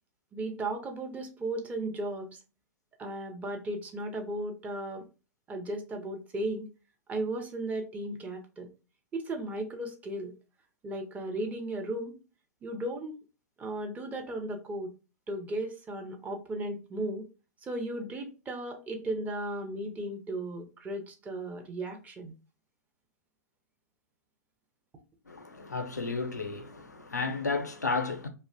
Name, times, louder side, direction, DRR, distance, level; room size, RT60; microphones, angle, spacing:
voice 1, 0.3-2.3 3.0-5.0 5.5-6.7 7.1-8.7 9.1-10.3 10.8-12.2 12.6-13.1 13.6-14.9 15.3-17.2 17.6-22.3, right 1 dB, 15° right, 0.5 m, -35 dB
voice 2, 25.3-28.3, left 4 dB, 90° left, 0.5 m, -33 dB
2.5 x 2.0 x 2.4 m
figure-of-eight pair, 105°, 9 cm